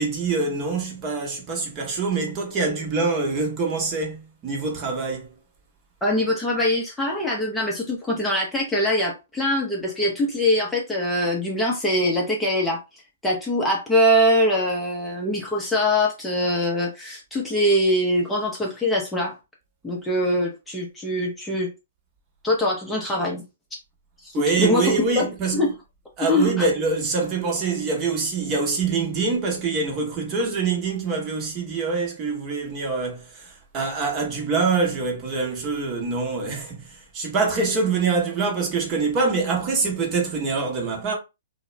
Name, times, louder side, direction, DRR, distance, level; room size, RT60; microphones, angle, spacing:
voice 1, 0.0-5.3 24.3-25.6 26.2-41.1, right 4 dB, 30° right, 0.9 m, -25 dB
voice 2, 6.0-19.4 19.8-21.7 22.4-23.4 24.2-25.2 25.5-25.7 26.3-26.7, left 1 dB, 5° left, 0.6 m, -23 dB
2.3 x 2.1 x 3.1 m
figure-of-eight pair, 115°, 0 cm